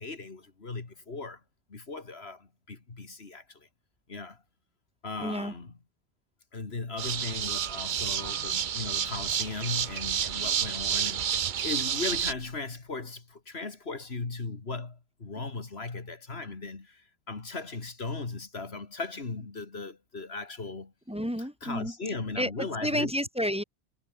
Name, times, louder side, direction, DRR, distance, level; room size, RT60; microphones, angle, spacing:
voice 1, 0.0-1.4 1.7-3.7 4.1-4.4 5.0-5.7 6.5-20.9 21.4-23.1, left 3 dB, 80° left, 2.6 m, -37 dB
voice 2, 5.2-5.5 21.1-21.9 22.4-22.5 22.8-23.6, equal, 5° right, 4.2 m, -30 dB
sound 1, 7.0-12.3, right 8 dB, 55° right, 0.8 m, -30 dB
omnidirectional pair, 1.0 m